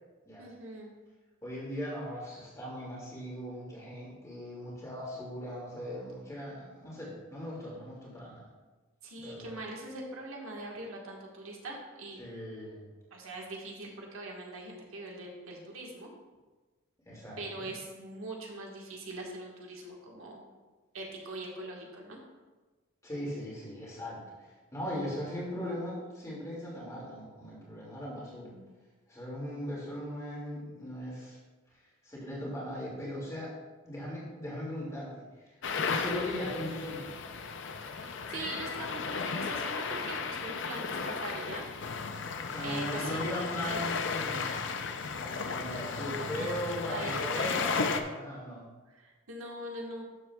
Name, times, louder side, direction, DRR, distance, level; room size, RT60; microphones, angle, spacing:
voice 1, 0.4-0.9 9.0-12.2 13.1-16.1 17.4-20.4 20.9-22.2 28.4-28.7 37.8-41.6 42.6-43.3 43.7-44.0 46.3-46.5 46.9-47.9 48.9-50.0, right 2 dB, 80° right, -1 dB, 1.5 m, -42 dB
voice 2, 1.4-8.5 9.2-9.5 12.2-12.9 17.1-17.7 23.0-28.5 29.1-31.4 32.0-33.5 33.8-35.1 35.4-37.1 42.4-44.5 45.2-48.7, equal, 15° left, -5 dB, 2.3 m, -39 dB
sound 1, 35.6-48.0, left 5 dB, 60° left, 0.5 m, -34 dB
12.0 x 7.1 x 2.3 m, 1.3 s
head